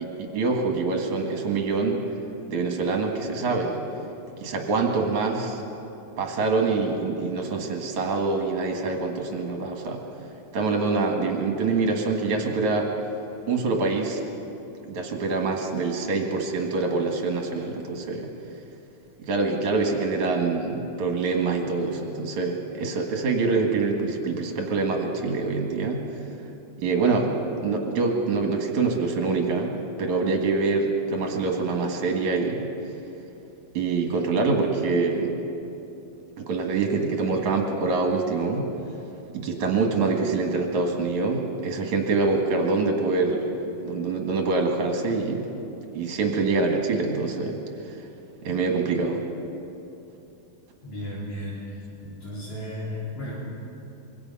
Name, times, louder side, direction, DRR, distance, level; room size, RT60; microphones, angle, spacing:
voice 1, 0.0-2.0 2.5-3.8 4.4-5.6 6.2-10.0 10.5-12.9 13.5-14.2 14.8-18.3 19.2-26.0 26.8-29.7 30.0-32.7 33.7-35.3 36.4-38.7 39.3-43.6 43.8-45.6 45.9-47.6 47.9-48.0 48.4-49.2, right 3 dB, 70° right, 2 dB, 3.2 m, -25 dB
voice 2, 50.8-51.6 52.0-53.4, left 1 dB, 70° left, -6 dB, 5.1 m, -34 dB
26.0 x 23.0 x 5.6 m, 2.9 s
omnidirectional pair, 3.6 m